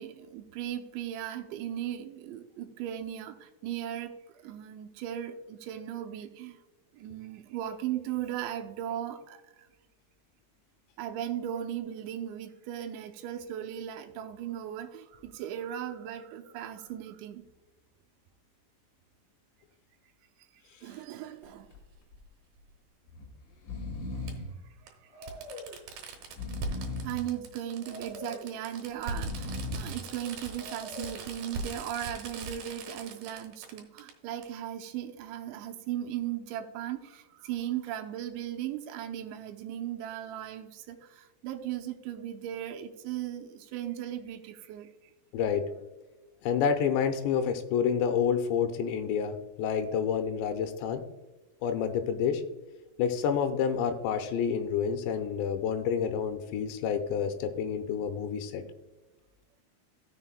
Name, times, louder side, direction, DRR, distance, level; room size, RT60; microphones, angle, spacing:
voice 1, 0.0-6.6 6.9-9.7 11.0-17.4 20.8-21.7 24.8-25.3 27.0-44.9, right 11 dB, 90° right, 4 dB, 3.1 m, -37 dB
Fireworks, 20.9-21.0 22.6-22.7 24.3-24.4 24.9-25.0 25.2-34.1 34.4-34.5, right 4 dB, 70° right, 2.9 m, -40 dB
Breathing, 21.4-21.8 22.1-22.2 23.1-23.3 23.5-24.5 25.1-25.8 26.2-27.2 27.8-28.5 29.0-30.0 30.6-31.2, left 2 dB, 55° left, 2.7 m, -39 dB
voice 2, 45.3-45.7 46.4-51.0 51.6-52.4 53.0-58.6, left 7 dB, 90° left, 7 dB, 3.0 m, -29 dB
16.5 x 6.6 x 2.2 m, 1.1 s
omnidirectional pair, 5.0 m